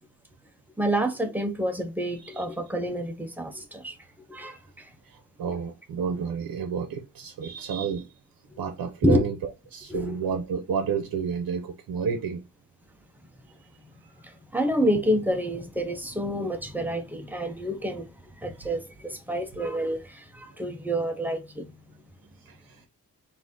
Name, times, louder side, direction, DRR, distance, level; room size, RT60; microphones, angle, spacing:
voice 1, 0.8-3.9 4.3-4.9 9.0-9.3 9.9-10.2 14.2-18.1 18.4-21.7, equal, 5° right, 0.8 m, -28 dB
voice 2, 5.0-8.1 8.6-12.4 13.6-13.7 14.1-14.2 22.4-22.8, right 6 dB, 75° right, 0.8 m, -31 dB
4.0 x 2.8 x 3.7 m
cardioid pair, 110°, 34 cm